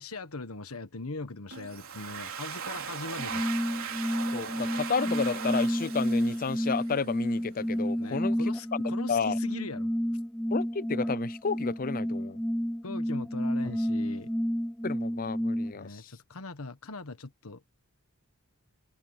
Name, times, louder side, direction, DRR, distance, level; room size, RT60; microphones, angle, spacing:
voice 1, 0.0-3.4 8.0-9.9 12.8-14.3 15.7-17.6, left 3 dB, 80° left, 1.5 m, -40 dB
Domestic sounds home sounds, 1.5-7.1, right 7 dB, 70° right, 3.6 m, -39 dB
sound 1, 3.2-15.7, equal, 5° left, 0.7 m, -30 dB
voice 2, 4.3-8.4 8.7-9.4 10.5-12.4 14.8-16.1, left 5 dB, 40° left, 0.6 m, -31 dB
head